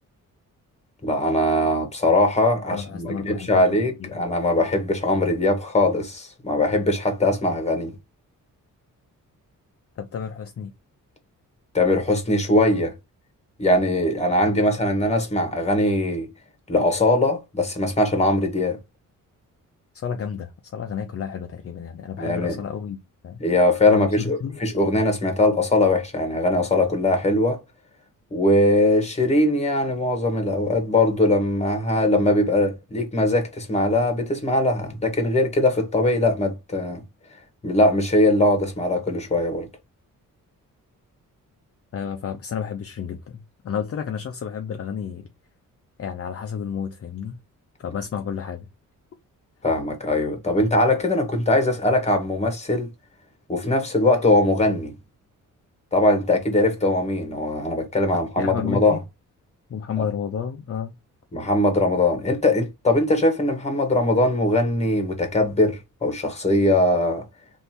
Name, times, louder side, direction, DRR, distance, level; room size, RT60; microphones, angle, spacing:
voice 1, 1.0-7.9 11.7-12.9 13.6-16.3 16.7-18.8 22.2-22.6 23.4-27.6 28.3-37.0 37.6-39.7 49.6-52.9 53.5-54.9 55.9-59.0 60.0-60.1 61.3-67.2, left 1 dB, 20° left, 1.5 m, -21 dB
voice 2, 2.7-4.3 10.0-10.7 19.9-23.4 23.9-24.6 41.9-45.3 46.0-47.4 47.8-48.7 58.4-59.0 59.7-60.9, left 7 dB, 45° left, 0.6 m, -31 dB
3.3 x 2.8 x 4.3 m
cardioid pair, 110°, 33 cm